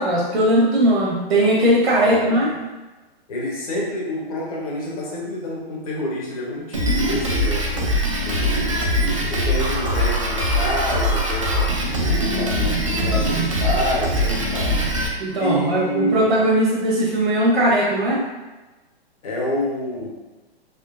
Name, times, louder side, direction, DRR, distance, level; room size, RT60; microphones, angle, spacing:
voice 1, 0.0-2.5 15.2-18.2, right 1 dB, 70° right, -6 dB, 1.2 m, -19 dB
voice 2, 1.9-2.5 3.3-14.8 15.3-16.4 19.2-20.1, left 1 dB, 35° left, -4 dB, 0.8 m, -28 dB
Drum kit, 6.7-15.1, equal, 35° right, 0.4 m, -22 dB
3.6 x 3.0 x 2.5 m, 1.2 s
hypercardioid pair, 175°, 31 cm